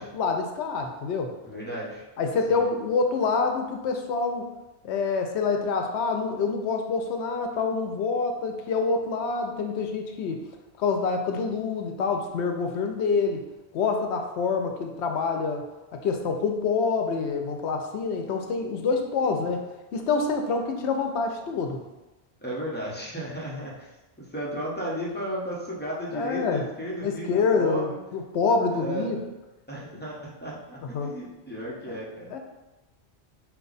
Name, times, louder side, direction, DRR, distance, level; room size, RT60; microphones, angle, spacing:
voice 1, 0.0-1.3 2.2-4.5 4.8-10.4 10.8-13.4 13.7-15.6 15.9-19.7 19.9-21.8 26.1-26.6 27.0-29.2 30.9-31.1 32.3-32.4, left 4 dB, 90° left, 4 dB, 0.9 m, -26 dB
voice 2, 1.4-2.0 2.5-2.7 22.4-28.0 28.7-29.2 29.7-32.3, equal, 10° left, -6 dB, 0.8 m, -34 dB
4.7 x 2.3 x 3.9 m, 1.0 s
omnidirectional pair, 1.1 m